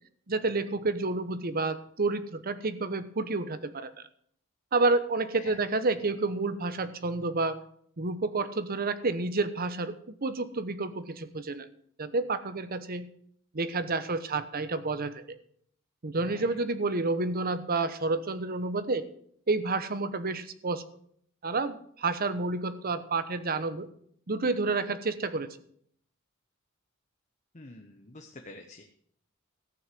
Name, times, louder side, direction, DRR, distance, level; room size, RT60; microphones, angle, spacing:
voice 1, 0.3-3.9 4.7-7.6 8.0-11.7 12.0-13.1 13.5-15.4 16.0-19.1 19.5-20.8 21.4-23.9 24.3-25.6, right 3 dB, 45° right, 12 dB, 0.9 m, -30 dB
voice 2, 16.2-16.6 27.5-28.9, left 2 dB, 35° left, 4 dB, 1.0 m, -48 dB
14.0 x 6.5 x 7.6 m, 0.64 s
head